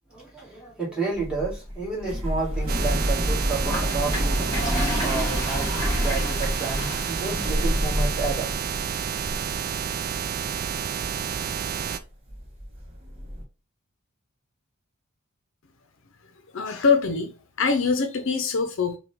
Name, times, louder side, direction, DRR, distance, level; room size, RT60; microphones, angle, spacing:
voice 1, 0.1-8.5, right 4 dB, 5° right, 2.1 m, -31 dB
sound 1, 1.1-10.7 11.0-11.6 12.0-12.1 12.3-13.4, equal, 25° right, 1.3 m, -29 dB
sound 2, 2.7-12.0, right 7 dB, 45° right, 0.4 m, -30 dB
Toilet flush, 3.6-8.7, left 1 dB, 20° left, 1.9 m, -33 dB
voice 2, 16.5-19.0, left 5 dB, 65° left, 0.6 m, -24 dB
5.8 x 2.3 x 3.6 m
head